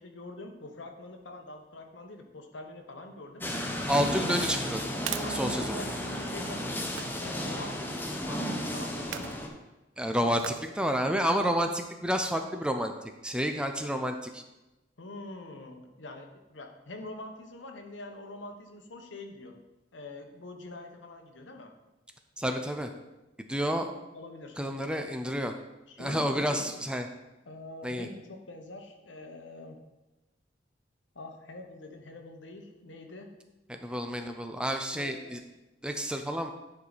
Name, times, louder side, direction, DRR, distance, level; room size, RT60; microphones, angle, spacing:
voice 1, 0.0-3.4 3.8-3.9 5.2-9.4 10.1-10.6 15.0-19.5 19.9-21.7 23.7-24.6 25.9-26.7 27.4-29.8 31.1-33.3 34.9-35.3, left 2 dB, 75° left, 4 dB, 1.0 m, -45 dB
sound 1, 3.4-9.5, equal, 10° left, 0.8 m, -33 dB
sound 2, 3.8-6.3 6.9-7.3 9.0-9.4 10.4-10.8 11.2-11.3, right 10 dB, 75° right, 0.4 m, -41 dB
voice 2, 3.9-4.8 5.3-5.8 10.0-12.9 13.2-14.4 22.4-22.9 23.5-23.9 24.6-25.5 26.0-27.1 27.8-28.1 33.7-35.4 35.8-36.5, equal, 5° right, 6 dB, 0.4 m, -30 dB
10.0 x 4.7 x 4.1 m, 1.0 s
head